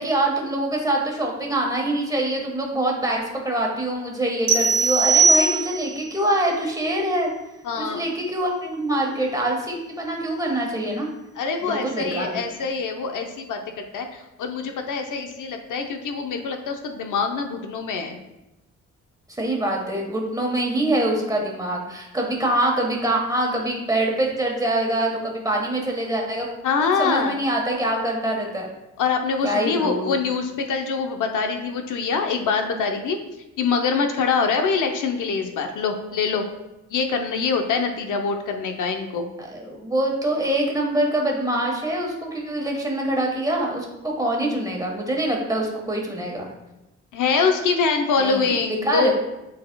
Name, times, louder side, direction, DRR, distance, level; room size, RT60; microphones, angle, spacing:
voice 1, 0.0-7.3 7.7-11.1 11.6-12.4 19.3-26.5 26.8-28.7 29.4-30.2 39.4-46.5 48.2-48.5 48.8-49.1, right 1 dB, 10° right, -1 dB, 1.3 m, -24 dB
sound 1, 4.5-6.0, right 4 dB, 60° right, 1.2 m, -19 dB
voice 2, 7.6-8.0 11.4-18.2 26.6-27.4 29.0-33.2 33.6-36.4 36.9-39.3 47.1-49.1, left 5 dB, 85° left, 4 dB, 0.7 m, -24 dB
10.5 x 4.1 x 2.3 m, 0.97 s
cardioid pair, 120°, 30 cm